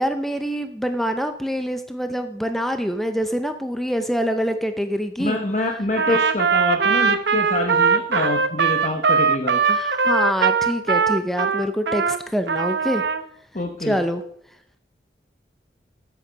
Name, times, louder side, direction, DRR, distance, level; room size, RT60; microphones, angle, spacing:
voice 1, 0.0-5.4 6.1-6.2 9.7-13.0 13.8-14.2, equal, ahead, 7 dB, 0.6 m, -25 dB
voice 2, 5.2-9.7 13.5-14.0, left 2 dB, 40° left, 3 dB, 1.0 m, -26 dB
Trumpet, 5.9-12.2 12.5-13.2, right 5 dB, 70° right, 0.8 m, -20 dB
13.0 x 8.2 x 5.1 m, 0.66 s
head